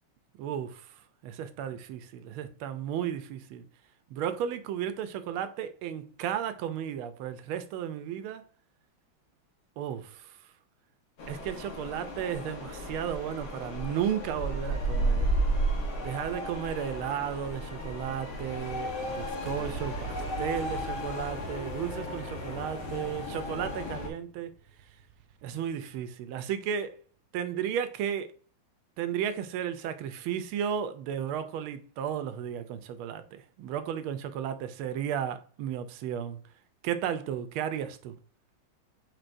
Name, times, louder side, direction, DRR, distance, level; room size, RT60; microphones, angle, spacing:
voice 1, 0.4-0.9 1.2-3.6 4.1-8.5 9.8-10.3 11.3-15.3 16.0-24.5 25.4-27.0 27.3-28.3 29.0-36.4 36.8-38.2, right 9 dB, 85° right, 1.5 m, -34 dB
sound 1, 11.2-24.1, right 1 dB, 75° left, 1.8 m, -33 dB
sound 2, 19.4-26.1, right 6 dB, 70° right, 1.0 m, -44 dB
4.6 x 4.4 x 2.5 m
omnidirectional pair, 2.3 m